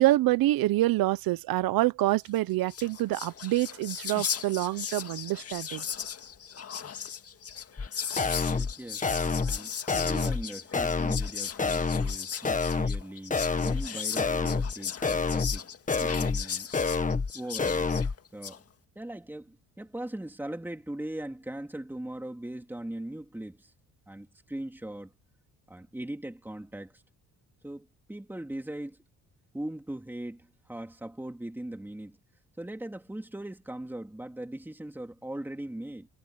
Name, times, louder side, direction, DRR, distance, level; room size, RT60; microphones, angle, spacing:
voice 1, 0.0-5.8, right 16 dB, 85° right, 0.9 m, -26 dB
Whispering, 2.4-2.5 2.6-18.6, left 7 dB, 45° left, 2.0 m, -37 dB
sound 1, 7.8-7.9 8.2-8.7 9.0-9.6 9.9-10.4 10.7-11.3 11.6-12.2 12.4-13.0 13.3-13.9 14.2-14.7 15.0-15.6 15.9-16.4 16.7-17.3 17.6-18.1, left 4 dB, 20° left, 1.5 m, -27 dB
voice 2, 8.5-15.7 16.0-16.7 17.3-17.9 18.3-18.6 18.9-23.7 24.1-25.1 25.7-27.0 27.6-29.0 29.5-32.2 32.6-36.1, right 1 dB, 5° right, 3.2 m, -40 dB
cardioid pair, 110°, 34 cm